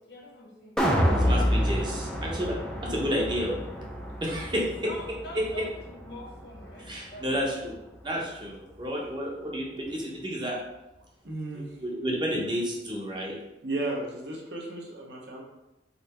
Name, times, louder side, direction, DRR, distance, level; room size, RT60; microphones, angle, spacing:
voice 1, 0.1-1.0 4.8-8.3, equal, 70° left, -2 dB, 1.4 m, -46 dB
sound 1, 0.8-7.0 7.4-7.5, equal, 5° left, 0.5 m, -28 dB
voice 2, 1.2-2.6 2.8-3.7 4.2-4.9 5.3-5.4 6.8-7.7 8.0-10.6 11.5-13.4, equal, 25° right, -2 dB, 0.9 m, -31 dB
voice 3, 11.2-11.7 13.6-15.4, right 2 dB, 65° right, -2 dB, 1.1 m, -34 dB
4.2 x 2.7 x 4.2 m, 0.96 s
head